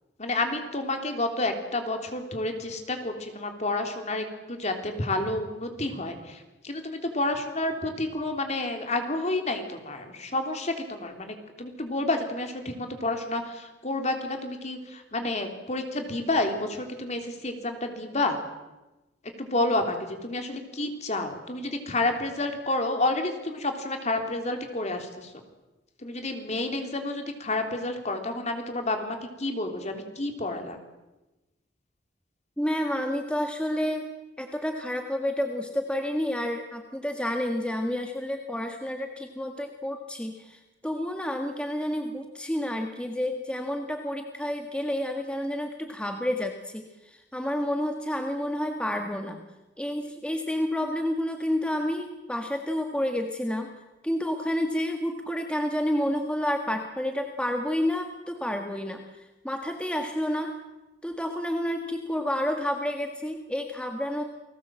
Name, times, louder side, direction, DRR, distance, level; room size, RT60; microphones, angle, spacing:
voice 1, 0.2-18.4 19.2-25.3 26.0-30.8, left 2 dB, 40° left, 5 dB, 3.4 m, -30 dB
voice 2, 32.6-34.1 34.4-49.4 49.8-53.7 54.0-60.5 61.0-64.2, left 1 dB, 5° left, 4 dB, 1.6 m, -30 dB
29.5 x 20.0 x 7.7 m, 1.1 s
head